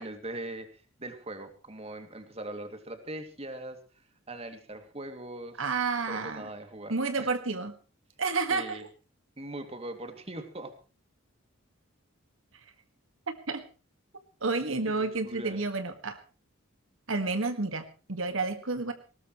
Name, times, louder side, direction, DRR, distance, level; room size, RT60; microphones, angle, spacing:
voice 1, 0.0-3.8 4.3-5.6 6.1-7.3 8.5-8.8 9.4-10.7 14.8-15.6, right 1 dB, 30° right, 7 dB, 2.6 m, -41 dB
voice 2, 5.6-6.5 6.9-7.8 8.2-8.8 13.5-13.7 14.4-16.2 17.1-18.9, right 3 dB, 70° right, 8 dB, 1.9 m, -30 dB
20.0 x 19.0 x 3.2 m, 0.34 s
head